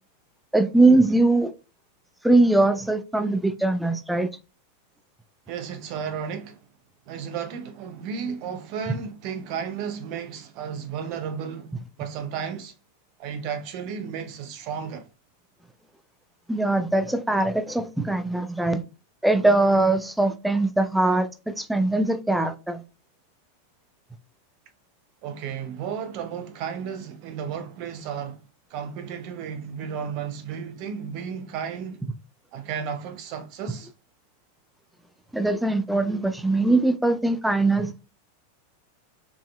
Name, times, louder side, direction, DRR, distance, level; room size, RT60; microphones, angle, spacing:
voice 1, 0.5-1.5 2.2-4.3 16.5-18.8 19.2-22.8 35.3-38.0, right 2 dB, 5° right, 0.4 m, -21 dB
voice 2, 5.5-6.6 7.1-12.7 13.2-15.1 25.2-28.4 28.7-32.0 32.5-33.9, right 7 dB, 45° right, 0.7 m, -33 dB
4.6 x 2.7 x 2.2 m
figure-of-eight pair, 90°, 0 cm